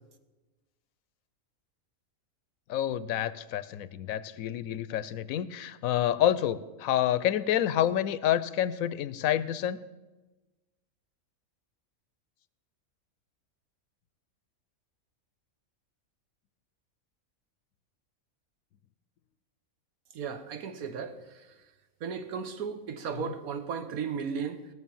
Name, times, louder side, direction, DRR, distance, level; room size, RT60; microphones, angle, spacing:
voice 1, 2.7-9.8 23.2-23.3, left 11 dB, 80° left, 16 dB, 1.0 m, -28 dB
voice 2, 20.1-21.5 22.0-24.7, right 6 dB, 85° right, 9 dB, 1.4 m, -35 dB
17.5 x 6.5 x 7.1 m, 1.2 s
omnidirectional pair, 1.5 m